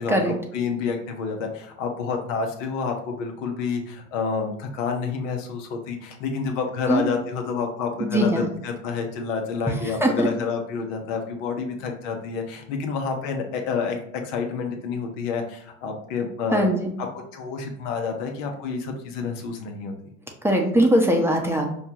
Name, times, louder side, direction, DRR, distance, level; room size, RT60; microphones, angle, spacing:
voice 1, 0.0-16.7 17.0-19.9, left 5 dB, 75° left, 3 dB, 0.9 m, -29 dB
voice 2, 8.0-8.5 10.0-10.3 16.5-16.9 20.4-21.7, right 1 dB, 5° right, 1 dB, 0.7 m, -20 dB
5.4 x 2.3 x 2.8 m, 0.71 s
hypercardioid pair, 80°, 38 cm